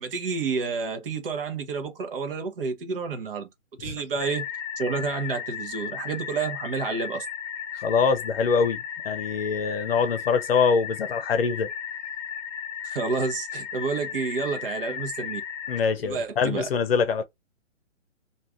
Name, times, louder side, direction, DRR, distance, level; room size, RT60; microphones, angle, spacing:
voice 1, 0.0-3.5 3.8-4.5 4.8-7.3 12.8-15.4 16.0-16.7, right 4 dB, 45° right, 0.8 m, -29 dB
sound 1, 4.2-15.8, left 8 dB, 15° left, 0.5 m, -35 dB
voice 2, 7.7-11.7 15.7-17.2, left 5 dB, 50° left, 0.7 m, -24 dB
2.5 x 2.4 x 3.4 m
figure-of-eight pair, 135°, 38 cm